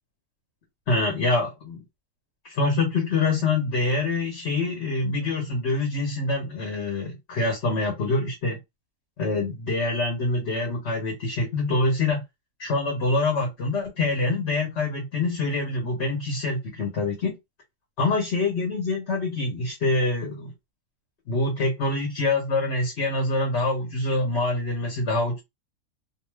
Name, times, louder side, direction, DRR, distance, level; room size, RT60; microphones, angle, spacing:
voice 1, 0.9-1.8 2.4-8.6 9.2-12.2 12.6-17.4 18.0-20.5 21.3-25.4, left 2 dB, 55° left, 1.1 m, -25 dB
2.6 x 2.4 x 3.2 m
omnidirectional pair, 1.5 m